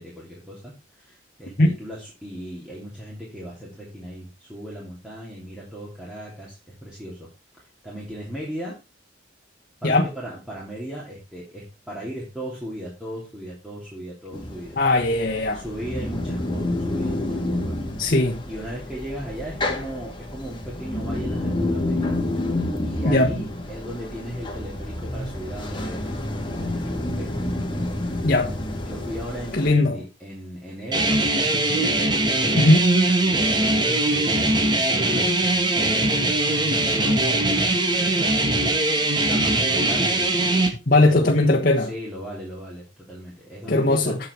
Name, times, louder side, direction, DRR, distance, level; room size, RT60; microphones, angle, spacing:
voice 1, 0.0-7.3 7.5-8.7 9.8-14.8 15.5-17.8 18.5-22.2 22.8-27.4 28.9-32.6 33.2-38.2 38.5-38.8 39.3-40.8 41.0-41.5 41.8-44.1, equal, 5° right, 3.2 m, -37 dB
sound 1, 14.3-29.7, left 1 dB, 25° left, 2.2 m, -29 dB
voice 2, 14.8-15.6 18.0-18.4 23.0-23.3 28.2-28.5 29.5-30.0 32.6-32.8 40.9-41.9 43.7-44.2, left 2 dB, 50° left, 1.3 m, -19 dB
sound 2, 30.9-40.7, right 2 dB, 25° right, 1.6 m, -21 dB
8.7 x 7.7 x 4.5 m
head